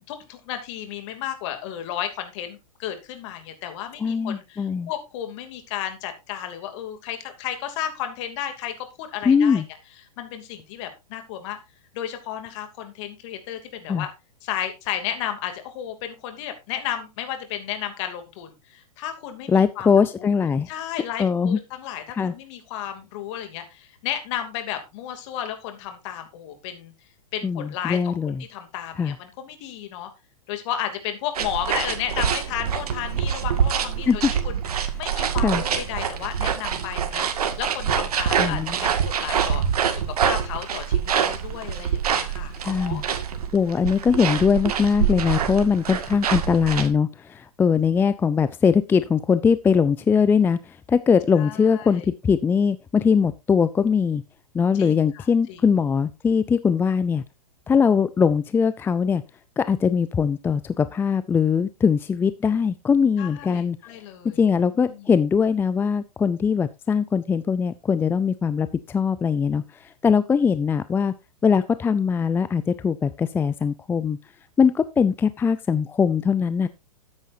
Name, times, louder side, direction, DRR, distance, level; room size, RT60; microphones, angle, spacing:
voice 1, 0.0-9.6 10.2-11.6 11.9-14.1 14.4-20.3 20.7-26.9 27.3-28.1 28.5-30.1 30.5-37.2 37.6-39.6 39.9-43.0 51.4-52.0 54.7-55.6 63.2-64.4 64.7-65.1, left 10 dB, 50° left, 6 dB, 2.8 m, -33 dB
voice 2, 4.0-4.9 9.2-9.6 13.9-14.1 19.5-20.7 21.2-21.6 22.1-22.3 27.4-28.4 29.0-29.1 34.1-34.3 35.4-35.6 38.4-38.8 42.6-43.0 43.5-54.2 54.5-57.2 57.7-59.2 59.6-63.8 64.4-71.1 71.4-74.2 74.6-76.7, left 6 dB, 10° left, 14 dB, 0.4 m, -21 dB
sound 1, 31.4-46.9, right 8 dB, 70° right, 2.0 m, -25 dB
13.0 x 9.6 x 2.7 m, 0.25 s
hypercardioid pair, 115°, 20 cm